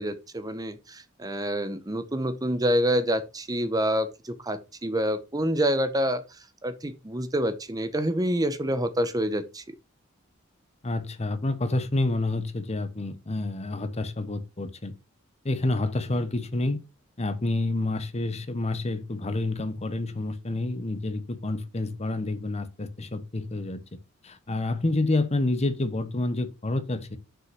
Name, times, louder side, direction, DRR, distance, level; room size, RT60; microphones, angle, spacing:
voice 1, 0.0-9.7, equal, 20° right, 0.8 m, -27 dB
voice 2, 10.8-14.9 15.4-16.8 17.2-23.8 24.2-27.2, left 2 dB, 30° left, 0.9 m, -28 dB
6.4 x 5.5 x 5.8 m
head